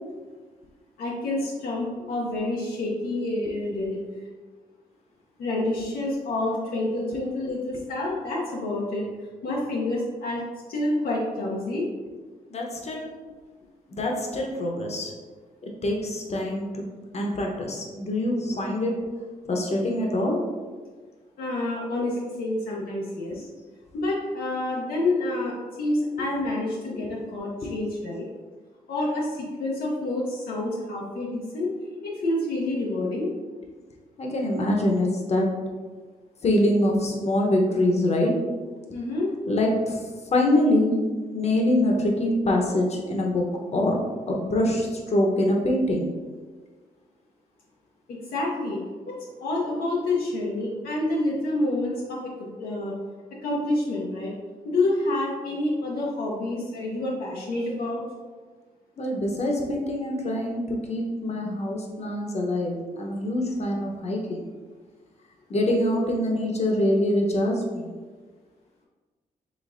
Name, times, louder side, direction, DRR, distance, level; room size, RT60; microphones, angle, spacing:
voice 1, 1.0-4.0 5.4-9.0 9.4-10.4 10.7-11.9 21.4-23.5 23.9-28.2 28.9-31.7 32.0-33.3 38.9-39.3 48.1-48.8 49.1-53.0 53.4-54.3 54.6-58.0, left 2 dB, 85° left, -4 dB, 0.8 m, -28 dB
voice 2, 12.5-13.1 13.9-15.1 15.8-16.8 17.1-19.0 19.5-20.4 23.3-23.4 26.9-27.1 27.6-27.7 34.2-35.5 36.4-38.3 39.5-40.0 40.3-40.9 41.3-44.0 44.3-46.1 59.0-64.4 65.5-67.9, left 1 dB, 45° left, 0 dB, 0.9 m, -24 dB
5.1 x 3.3 x 2.5 m, 1.4 s
cardioid pair, 95°, 15 cm